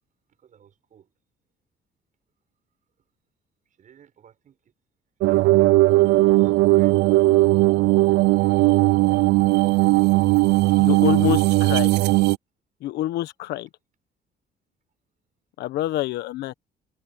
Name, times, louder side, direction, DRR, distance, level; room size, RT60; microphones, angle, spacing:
voice 1, 0.4-1.1 3.8-4.7 5.2-7.3 10.5-10.6, right 8 dB, 50° right, 6.9 m, -55 dB
sound 1, 5.2-12.4, right 20 dB, 80° right, 0.5 m, -18 dB
voice 2, 10.8-11.9 12.8-13.7 15.6-16.5, left 14 dB, 80° left, 1.2 m, -26 dB
cardioid pair, 110°, 17 cm